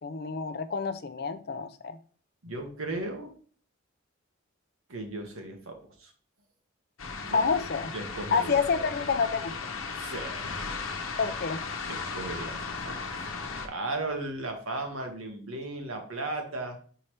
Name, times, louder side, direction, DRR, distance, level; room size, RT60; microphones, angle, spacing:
voice 1, 0.0-2.0 7.3-7.9 8.3-9.5 11.2-11.6, left 5 dB, 50° left, 10 dB, 0.5 m, -28 dB
voice 2, 2.4-3.3 4.9-6.1 7.3-7.4 7.9-8.8 9.9-10.7 11.2-11.3 11.9-13.1 13.6-16.8, right 2 dB, 85° right, 4 dB, 1.5 m, -36 dB
sound 1, 7.0-13.7, left 4 dB, 80° left, 0.9 m, -36 dB
5.7 x 5.5 x 3.2 m, 0.44 s
head